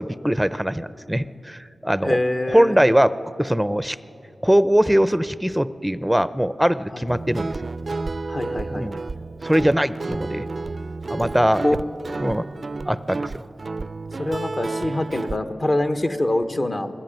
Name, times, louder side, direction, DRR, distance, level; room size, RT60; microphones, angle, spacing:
voice 1, 0.0-2.2 2.5-3.1 3.4-4.0 4.4-7.5 8.7-9.0 9.4-10.5 11.1-11.6 12.2-12.5 12.9-13.4, equal, 5° right, 15 dB, 0.6 m, -21 dB
voice 2, 2.0-2.8 6.9-7.0 8.3-9.0 11.6-11.8 14.2-16.9, left 1 dB, 45° left, 8 dB, 1.2 m, -24 dB
Guitar, 7.1-15.4, right 3 dB, 55° right, 0.4 m, -31 dB
20.0 x 14.0 x 9.2 m, 2.9 s
cardioid pair, 50°, 0 cm